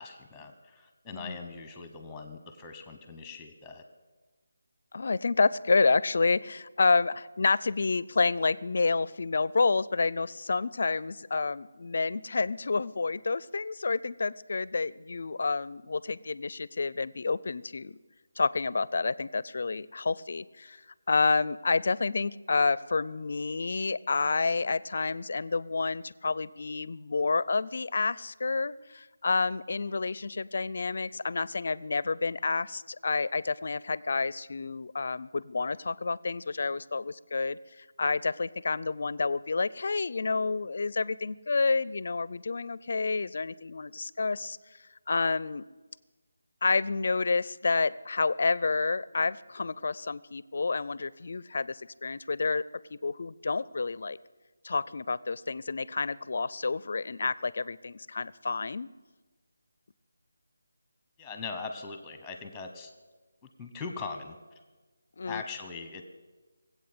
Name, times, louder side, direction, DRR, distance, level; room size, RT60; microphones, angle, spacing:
voice 1, 0.0-3.8 61.2-62.9 63.6-64.6 65.2-66.0, left 4 dB, 5° left, 6 dB, 1.0 m, -41 dB
voice 2, 4.9-18.0 18.4-20.8 21.1-44.6 45.1-45.7 46.6-52.6 52.9-54.2 54.6-58.9 65.2-65.4, left 4 dB, 50° left, 20 dB, 0.4 m, -29 dB
19.0 x 8.3 x 8.0 m, 1.3 s
figure-of-eight pair, 170°, 0 cm